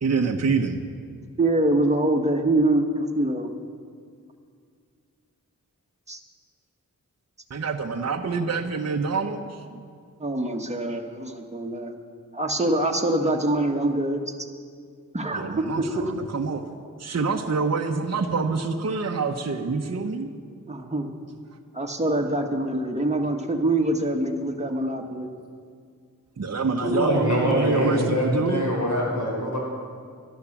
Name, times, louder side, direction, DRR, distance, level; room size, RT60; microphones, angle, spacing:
voice 1, 0.0-0.8 7.5-9.8 15.3-16.6 17.0-20.3 26.4-28.7, right 4 dB, 50° right, 4 dB, 0.9 m, -26 dB
voice 2, 1.4-3.5 6.1-6.2 10.2-11.9 12.3-14.2 15.1-15.6 20.7-21.1 21.7-25.3, right 1 dB, 20° right, 2 dB, 1.4 m, -24 dB
voice 3, 26.8-29.6, equal, 60° left, -3 dB, 4.6 m, -24 dB
12.0 x 11.0 x 7.3 m, 2.1 s
wide cardioid pair, 55°, 34 cm